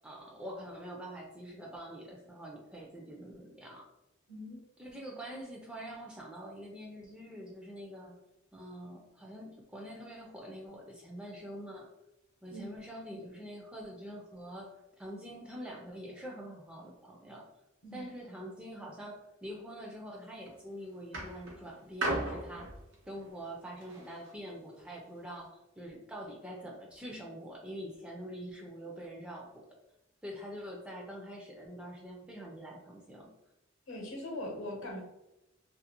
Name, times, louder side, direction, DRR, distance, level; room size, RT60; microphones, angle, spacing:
voice 1, 0.0-3.9 4.8-8.2 8.5-11.9 12.4-17.5 17.9-22.7 23.1-29.7 30.2-33.3, equal, 5° right, -1 dB, 0.3 m, -45 dB
sound 1, 20.1-20.5 21.1-24.4 25.2-25.3, right 1 dB, 80° right, 0.8 m, -37 dB
voice 2, 33.9-35.0, left 1 dB, 75° left, 0 dB, 0.8 m, -41 dB
2.4 x 2.4 x 2.8 m, 0.93 s
head